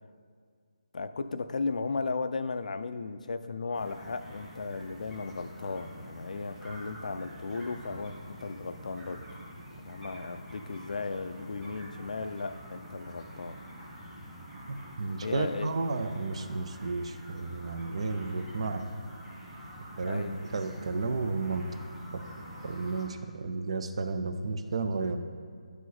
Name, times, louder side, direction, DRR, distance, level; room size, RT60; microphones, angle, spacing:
voice 1, 0.9-9.2 9.8-13.6 15.2-15.8 20.1-20.4, left 4 dB, 65° left, 11 dB, 0.4 m, -35 dB
sound 1, 3.7-23.0, equal, 5° right, 1.1 m, -46 dB
voice 2, 14.7-18.8 20.0-21.7 22.1-22.2 22.6-25.2, right 3 dB, 50° right, 8 dB, 0.5 m, -32 dB
9.3 x 4.9 x 4.0 m, 2.1 s
hypercardioid pair, 165°, 4 cm